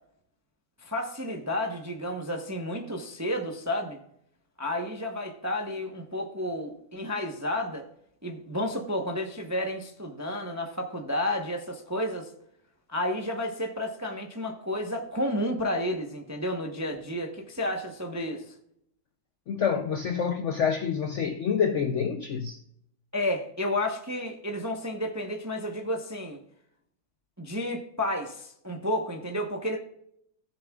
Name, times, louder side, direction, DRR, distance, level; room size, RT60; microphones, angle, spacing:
voice 1, 0.8-4.0 4.6-7.9 8.2-12.3 12.9-18.5 23.1-26.4 27.4-29.8, left 1 dB, 20° right, 0.4 m, -31 dB
voice 2, 19.5-22.6, left 7 dB, 90° left, 0.6 m, -27 dB
16.5 x 7.1 x 2.4 m
omnidirectional pair, 2.1 m